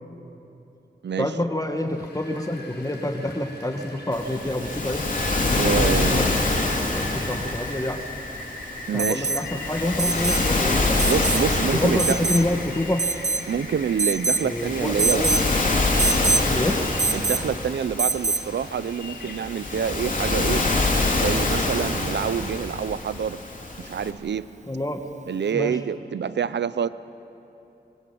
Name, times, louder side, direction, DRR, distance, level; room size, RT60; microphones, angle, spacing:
voice 1, 1.2-5.0 5.4-8.1 8.9-11.0 11.7-13.1 14.4-15.4 16.5-16.8 24.7-25.0 25.5-25.8, left 1 dB, 20° left, 4 dB, 1.9 m, -27 dB
Rain, 1.9-21.3, left 2 dB, 75° left, 4.7 m, -40 dB
Waves surf, 4.1-24.1, left 2 dB, 50° left, 3.5 m, -26 dB
voice 2, 5.6-6.3 8.9-9.3 11.1-12.3 13.5-15.3 17.1-20.7 21.2-23.4 23.8-24.5 25.3-26.9, right 7 dB, 90° right, 15 dB, 0.7 m, -27 dB
Alarm, 9.0-9.5 10.0-10.5 11.0-11.4 12.0-12.5 13.0-13.5 14.0-14.5 15.0-15.5 16.0-16.5 17.0-17.5 18.0-18.5 20.2-20.3, right 4 dB, 40° right, 1.0 m, -24 dB
25.5 x 21.0 x 8.8 m, 2.9 s
cardioid pair, 45°, 17 cm